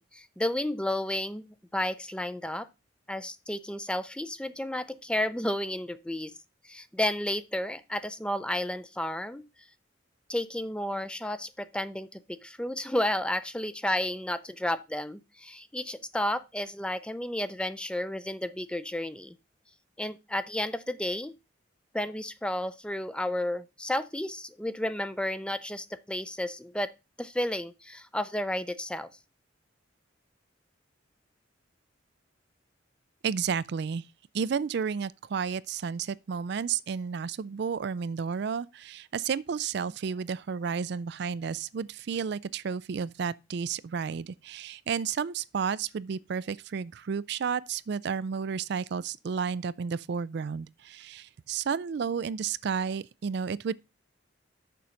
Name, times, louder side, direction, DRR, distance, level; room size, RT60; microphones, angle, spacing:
voice 1, 0.0-2.7 3.1-6.3 6.6-9.5 10.3-19.3 20.0-21.3 21.9-26.9 27.2-29.1, left 1 dB, 5° left, 0.5 m, -32 dB
voice 2, 33.2-34.0 34.3-53.7, right 6 dB, 60° right, 0.4 m, -32 dB
6.9 x 6.2 x 5.7 m
head